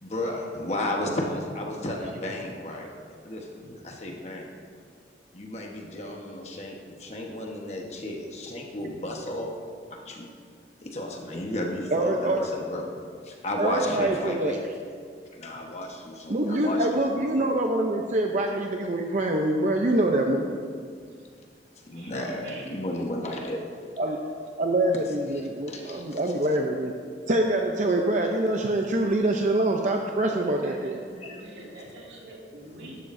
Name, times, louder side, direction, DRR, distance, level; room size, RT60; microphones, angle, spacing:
voice 1, 0.0-2.9 3.2-4.5 5.3-9.5 9.9-10.3 10.8-12.9 13.2-14.7 15.3-17.0 21.9-23.6 25.7-26.2 31.2-31.5, left 1 dB, 40° left, 0 dB, 1.2 m, -33 dB
voice 2, 11.9-12.5 13.6-14.6 16.3-20.6 24.0-24.2 24.6-26.9 27.3-31.0, right 1 dB, 45° right, 2 dB, 0.6 m, -25 dB
voice 3, 22.4-22.8 30.2-33.0, right 1 dB, 80° right, -3 dB, 2.4 m, -44 dB
13.0 x 11.5 x 2.6 m, 2.1 s
head